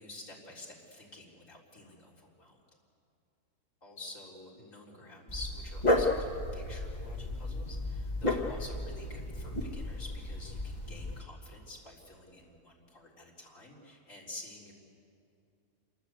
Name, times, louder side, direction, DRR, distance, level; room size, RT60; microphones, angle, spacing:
voice 1, 0.0-2.6 3.8-14.7, left 2 dB, 50° left, -3 dB, 4.5 m, -49 dB
Dog, 5.3-11.2, left 1 dB, 25° left, 1.9 m, -33 dB
27.5 x 23.0 x 8.2 m, 2.5 s
omnidirectional pair, 1.7 m